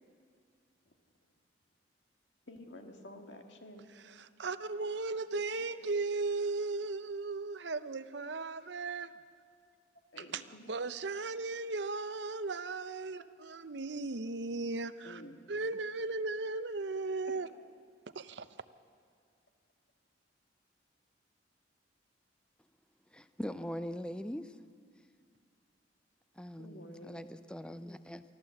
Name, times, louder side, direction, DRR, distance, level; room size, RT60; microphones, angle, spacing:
voice 1, 2.5-3.9 5.3-5.9 8.7-8.8 10.1-10.7 13.2-13.4 15.0-15.5 17.3-17.4 26.6-27.3, left 1 dB, 70° left, 4 dB, 1.9 m, -51 dB
voice 2, 4.4-9.1 10.7-15.1 15.5-17.5 18.2-18.5, right 3 dB, 65° right, 12 dB, 0.7 m, -36 dB
voice 3, 23.1-24.6 26.4-28.2, equal, 5° left, 11 dB, 0.5 m, -41 dB
24.0 x 14.0 x 7.7 m, 2.2 s
head